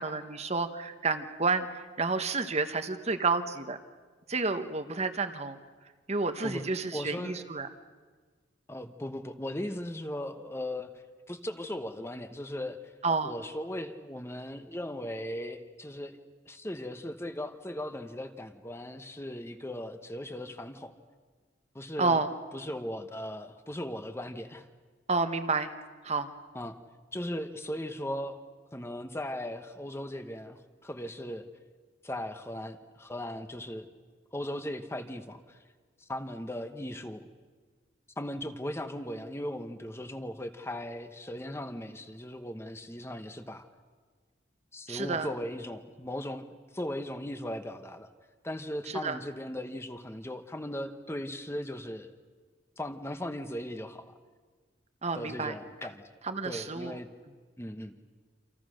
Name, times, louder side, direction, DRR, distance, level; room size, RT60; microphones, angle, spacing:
voice 1, 0.0-3.8 4.3-5.6 6.1-7.7 13.0-13.3 22.0-22.3 25.1-25.7 26.0-26.3 44.9-45.3 48.9-49.2 55.0-55.6 56.2-56.9, right 4 dB, 35° right, 9 dB, 1.1 m, -30 dB
voice 2, 6.9-7.4 8.7-10.9 11.3-12.8 13.2-16.2 16.5-20.9 21.7-22.2 22.5-24.7 26.5-26.7 27.1-28.4 28.7-31.5 32.0-33.9 34.3-35.6 36.0-37.3 38.2-43.7 44.7-46.4 46.7-48.1 48.4-52.1 52.8-54.1 55.1-56.0 56.4-57.1 57.6-58.0, left 1 dB, 15° left, 8 dB, 1.0 m, -38 dB
28.5 x 26.5 x 6.5 m, 1.5 s
head